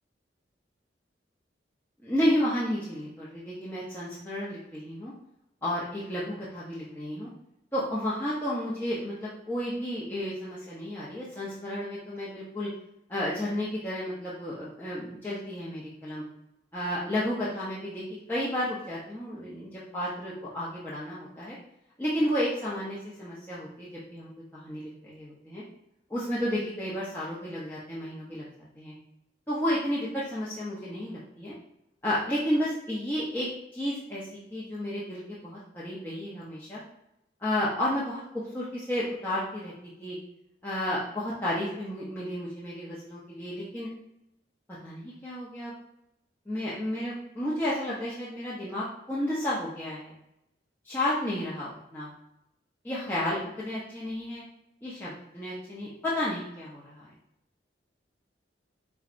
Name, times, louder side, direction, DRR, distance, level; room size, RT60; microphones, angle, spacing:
voice 1, 2.0-5.1 5.6-7.3 7.7-12.7 13.1-16.2 16.7-18.0 18.3-21.6 22.0-25.6 26.1-28.4 28.8-28.9 29.5-31.5 32.0-33.5 33.7-34.2 34.5-36.8 37.4-39.7 40.0-40.2 40.6-43.9 44.8-45.7 46.5-50.1 50.8-52.1 52.8-54.4 54.8-57.1, left 1 dB, 10° left, -9 dB, 0.6 m, -32 dB
4.7 x 3.0 x 2.5 m, 0.84 s
head